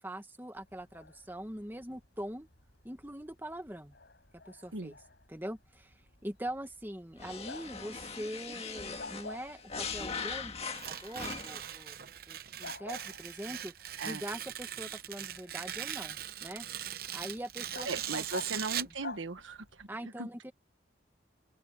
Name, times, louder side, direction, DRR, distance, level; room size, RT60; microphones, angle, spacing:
voice 1, 0.0-2.5 2.8-3.9 4.4-5.0 5.3-12.0 12.3-16.7 17.1-18.2 19.9-20.5, right 1 dB, 10° right, 1.6 m, -43 dB
Bark, 0.6-19.9, left 3 dB, 60° left, 5.4 m, -52 dB
sound 1, 7.2-11.7, left 5 dB, 30° left, 1.8 m, -40 dB
Tearing, 10.7-19.0, right 11 dB, 50° right, 0.8 m, -40 dB
voice 2, 17.8-20.3, right 3 dB, 85° right, 1.4 m, -38 dB
open air
head